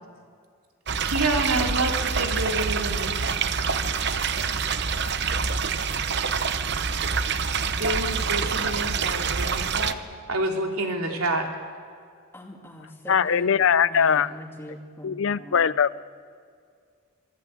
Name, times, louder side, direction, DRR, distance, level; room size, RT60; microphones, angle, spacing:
sound 1, 0.9-9.9, right 5 dB, 50° right, 0.8 m, -26 dB
voice 1, 1.0-3.2 7.7-10.0 10.3-11.5, right 2 dB, 90° right, 2 dB, 3.1 m, -28 dB
voice 2, 12.3-15.6, equal, 10° left, 1 dB, 2.7 m, -42 dB
voice 3, 13.1-14.3 15.0-16.0, left 7 dB, 65° left, 17 dB, 0.5 m, -21 dB
27.0 x 17.5 x 8.8 m, 2.2 s
head